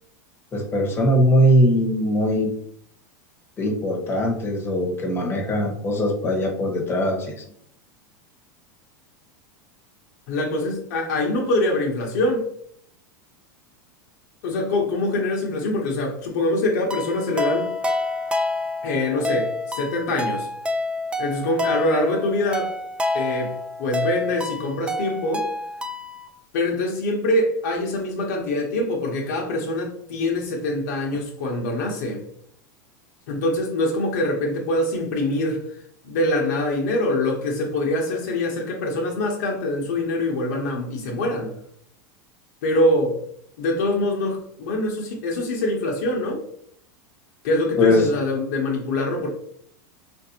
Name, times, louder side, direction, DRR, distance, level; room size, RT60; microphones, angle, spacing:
voice 1, 0.5-2.5 3.6-7.4 47.8-48.1, equal, 25° left, 0 dB, 1.1 m, -20 dB
voice 2, 10.3-12.5 14.4-17.8 18.8-20.5 21.2-22.7 23.1-25.5 26.5-32.2 33.3-35.8 36.0-41.5 42.6-43.2 43.6-46.4 47.4-49.3, left 1 dB, 70° left, 0 dB, 0.9 m, -24 dB
sound 1, 16.9-26.3, left 2 dB, 10° right, 0.4 m, -28 dB
3.8 x 2.6 x 2.8 m, 0.65 s
hypercardioid pair, 115°, 10 cm